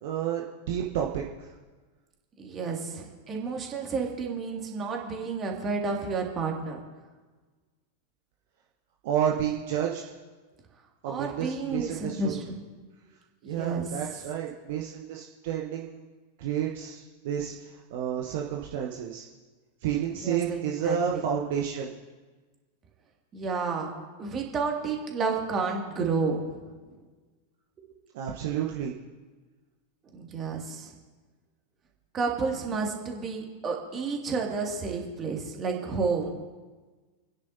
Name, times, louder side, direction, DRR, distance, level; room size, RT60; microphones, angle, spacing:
voice 1, 0.0-1.5 9.0-10.0 11.0-12.4 13.4-16.1 16.4-19.2 19.8-21.9 28.1-28.9, right 9 dB, 50° right, 0 dB, 1.0 m, -30 dB
voice 2, 2.4-6.8 11.0-12.4 13.4-13.9 20.2-21.2 23.3-26.6 30.0-30.9 32.1-36.3, right 4 dB, 25° right, 0 dB, 2.3 m, -31 dB
29.5 x 10.0 x 2.8 m, 1.3 s
figure-of-eight pair, 90°, 0 cm